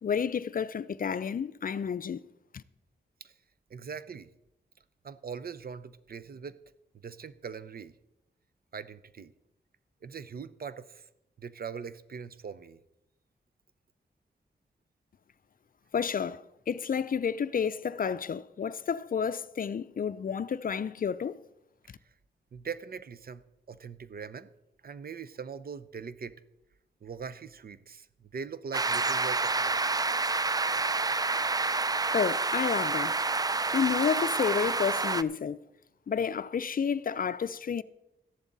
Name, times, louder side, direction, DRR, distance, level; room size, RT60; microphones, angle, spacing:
voice 1, 0.0-2.2 2.5-2.6 15.9-21.4 32.1-33.2 33.7-35.6 36.1-37.8, left 7 dB, 50° left, 0.5 m, -30 dB
voice 2, 3.7-4.3 5.0-6.6 7.0-7.9 8.7-9.3 10.0-11.1 11.4-12.8 22.5-23.4 23.7-24.5 24.8-26.4 27.0-29.8, right 6 dB, 55° right, 0.7 m, -41 dB
sound 1, 28.7-35.2, right 3 dB, 20° right, 0.4 m, -28 dB
13.5 x 11.0 x 4.0 m
cardioid pair, 65°, 18 cm